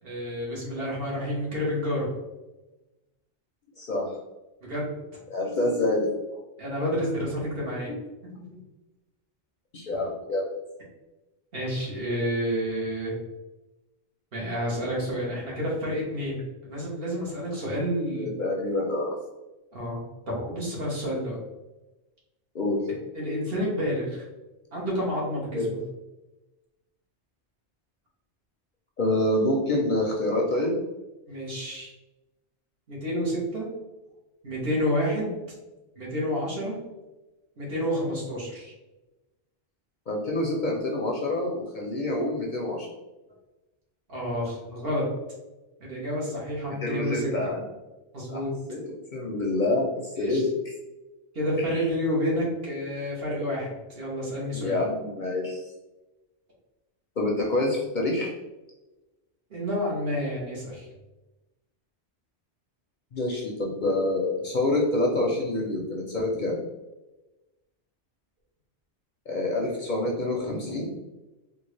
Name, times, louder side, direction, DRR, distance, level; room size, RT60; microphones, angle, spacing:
voice 1, 0.0-2.1 4.6-4.9 6.6-7.9 8.2-8.6 11.5-13.1 14.3-16.4 16.7-18.3 19.7-21.4 23.1-24.2 24.7-25.8 31.3-31.9 32.9-33.7 34.4-35.3 36.0-36.8 37.6-38.7 44.1-45.0 45.8-47.3 48.1-48.5 50.2-50.4 51.3-54.8 59.5-60.9, equal, 60° right, -4 dB, 1.3 m, -29 dB
voice 2, 3.8-4.2 5.3-6.1 9.7-10.5 18.2-19.1 22.5-22.8 25.5-25.7 29.0-30.7 40.1-42.9 46.8-47.6 48.3-48.4 48.7-50.5 51.6-51.9 54.5-55.7 57.2-58.3 63.1-66.6 69.3-70.9, left 2 dB, 55° left, -1 dB, 0.6 m, -27 dB
3.7 x 2.4 x 3.1 m, 1.1 s
omnidirectional pair, 1.2 m